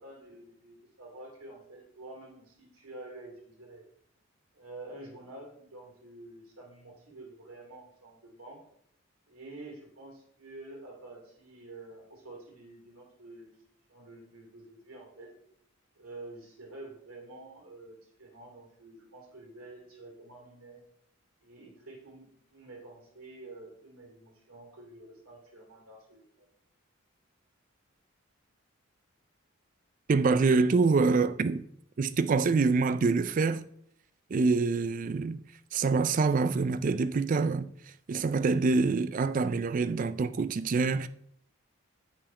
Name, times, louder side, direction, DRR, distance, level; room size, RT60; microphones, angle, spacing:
voice 1, 0.0-3.9 4.5-8.6 9.3-13.5 13.9-15.3 16.0-20.8 21.4-26.5, right 2 dB, 90° right, 2.7 m, -48 dB
voice 2, 30.1-31.6 32.0-33.6 34.3-35.4 35.7-37.7 38.1-41.1, right 4 dB, 40° right, 0.3 m, -26 dB
7.1 x 5.8 x 4.3 m
head